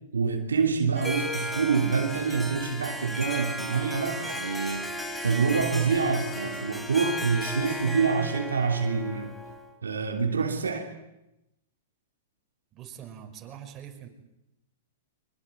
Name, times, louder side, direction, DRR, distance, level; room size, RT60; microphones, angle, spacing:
voice 1, 0.1-4.9 5.2-9.3 9.8-10.9, right 5 dB, 90° right, 2.9 m, -26 dB
Harp, 1.0-9.7, left 1 dB, 5° left, 4.0 m, -35 dB
voice 2, 12.7-14.1, right 9 dB, 30° right, 5.8 m, -43 dB
24.5 x 22.5 x 9.4 m
hypercardioid pair, 115°, 0 cm